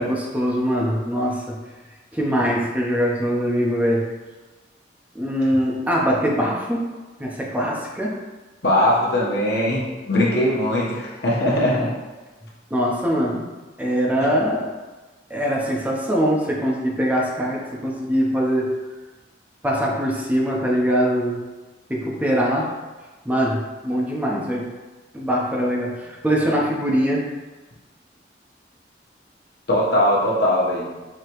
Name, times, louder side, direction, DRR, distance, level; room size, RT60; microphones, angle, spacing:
voice 1, 0.0-1.5 2.1-4.0 5.1-6.9 7.2-8.1 12.7-13.5 13.8-14.7 15.3-18.8 19.6-21.4 21.9-22.7 23.2-24.7 25.1-27.2, equal, 10° right, -3 dB, 0.6 m, -22 dB
voice 2, 8.6-11.9 29.7-30.9, left 1 dB, 65° left, -5 dB, 1.1 m, -20 dB
4.9 x 2.9 x 3.0 m, 1.2 s
head